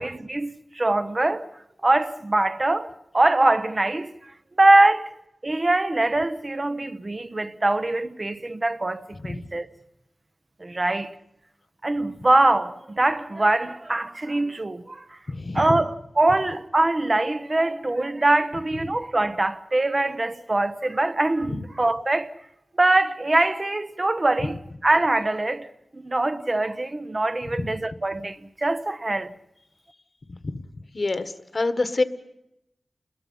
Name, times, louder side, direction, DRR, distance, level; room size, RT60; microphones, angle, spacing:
voice 1, 0.0-1.5 1.8-4.3 4.6-5.2 5.4-9.7 10.6-11.2 11.8-15.2 15.5-22.3 22.8-24.6 24.8-25.7 25.9-29.3, right 2 dB, 35° right, 0.9 m, -23 dB
voice 2, 15.3-15.6 30.4-30.6 30.9-32.0, left 3 dB, 50° left, 1.5 m, -26 dB
29.5 x 21.5 x 5.7 m
wide cardioid pair, 90°, 0 cm